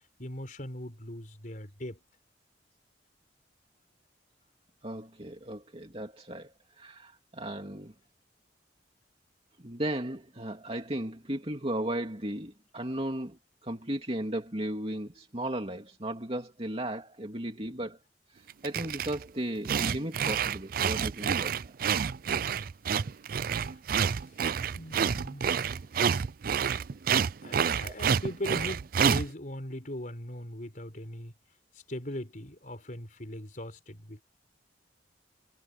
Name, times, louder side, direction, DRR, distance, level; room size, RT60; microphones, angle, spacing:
voice 1, 0.2-2.0 23.6-23.8 24.7-25.4 27.4-31.3 31.9-34.2, left 1 dB, 45° left, 4.3 m, -39 dB
voice 2, 4.8-7.9 9.6-18.0 18.3-21.7 27.8-28.0, right 1 dB, 30° right, 2.6 m, -36 dB
sound 1, 18.5-19.2 19.6-29.3, right 7 dB, 50° right, 0.4 m, -28 dB
head